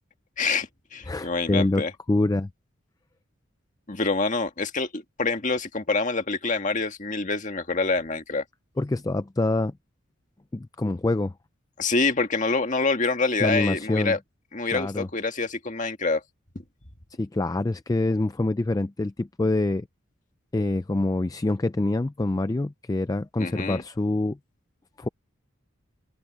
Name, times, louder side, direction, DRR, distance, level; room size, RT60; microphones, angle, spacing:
voice 1, 0.4-1.9 3.9-8.4 11.8-14.2 14.5-16.2 23.4-23.8, left 3 dB, 40° left, 1.8 m, -26 dB
voice 2, 1.1-2.5 8.8-9.7 10.5-11.3 13.4-14.2 14.7-15.1 17.2-19.9 20.5-24.4 25.0-25.1, left 2 dB, 15° left, 0.3 m, -25 dB
head